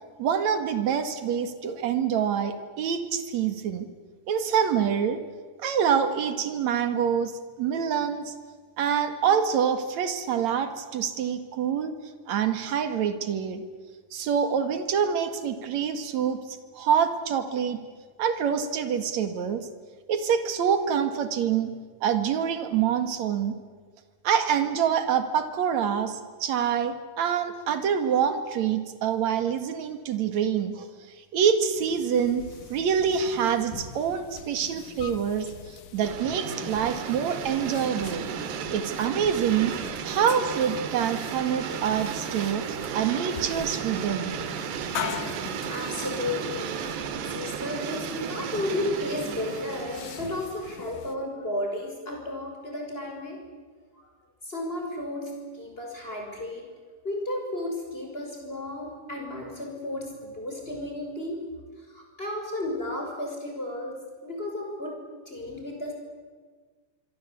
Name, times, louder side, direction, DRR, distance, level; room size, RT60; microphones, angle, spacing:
voice 1, 0.2-3.9 4.3-5.2 5.6-8.3 8.8-11.9 12.3-13.6 14.1-16.4 16.7-17.8 18.2-19.7 20.1-21.7 22.0-23.5 24.2-30.9 31.3-32.4 32.7-38.3 38.7-39.7 40.0-44.3, right 7 dB, 55° right, 9 dB, 2.3 m, -26 dB
sound 1, 31.7-51.1, left 8 dB, 60° left, 2.6 m, -42 dB
sound 2, 36.0-50.5, right 7 dB, 70° right, 3.5 m, -34 dB
voice 2, 45.7-46.8 47.2-53.4 53.9-54.1 54.4-56.7 57.0-61.5 61.8-64.0 64.2-65.0 65.3-65.9, left 1 dB, 10° left, 1 dB, 5.7 m, -33 dB
26.0 x 24.5 x 8.4 m, 1.5 s
omnidirectional pair, 5.1 m